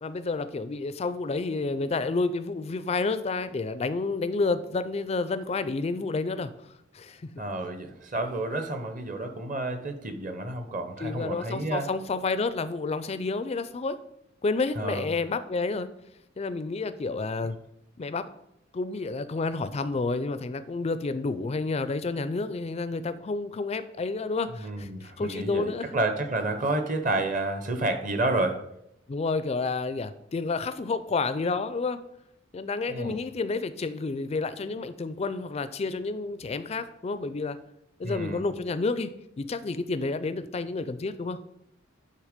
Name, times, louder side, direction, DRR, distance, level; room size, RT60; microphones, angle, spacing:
voice 1, 0.0-6.5 6.9-7.3 11.0-14.0 14.4-15.9 16.4-17.5 18.0-18.3 18.7-26.0 29.1-32.0 32.5-37.6 38.0-39.1 39.4-41.4, left 3 dB, 30° left, 13 dB, 0.4 m, -30 dB
voice 2, 7.4-11.9 14.8-15.1 24.5-28.6 32.9-33.2 38.0-38.4, right 2 dB, 40° right, 7 dB, 0.8 m, -30 dB
9.6 x 3.3 x 5.0 m, 0.79 s
head